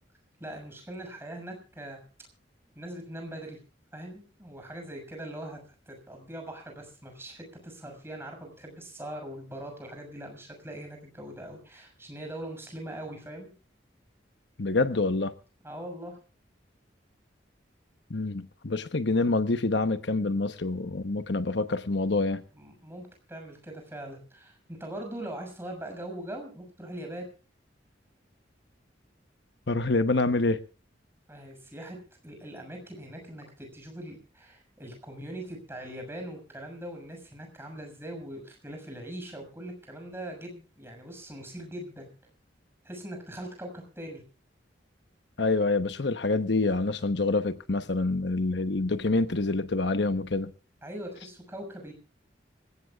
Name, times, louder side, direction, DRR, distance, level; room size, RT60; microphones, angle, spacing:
voice 1, 0.4-2.0 2.7-3.6 3.9-5.6 5.9-13.5 15.6-16.2 22.5-27.3 31.3-32.0 32.2-42.1 42.8-44.2 50.8-51.9, right 1 dB, 15° right, 6.4 m, -41 dB
voice 2, 14.6-15.3 18.1-22.4 29.7-30.6 45.4-50.5, left 3 dB, 65° left, 1.0 m, -26 dB
26.0 x 16.5 x 2.4 m
head